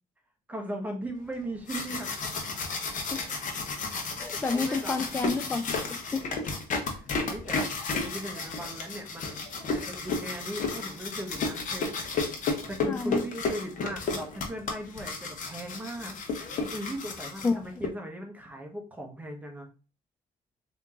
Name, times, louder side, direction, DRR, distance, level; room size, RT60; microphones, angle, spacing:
voice 1, 0.5-2.1 4.5-5.1 6.3-6.4 6.8-11.9 12.7-16.2 16.7-19.7, right 1 dB, 10° right, 2 dB, 1.0 m, -38 dB
sound 1, 1.4-17.9, left 4 dB, 50° left, 1.0 m, -33 dB
voice 2, 4.2-6.2 12.9-13.2 17.4-17.6, left 4 dB, 15° left, 7 dB, 0.3 m, -30 dB
3.5 x 2.9 x 3.6 m, 0.34 s
cardioid pair, 110°, 17 cm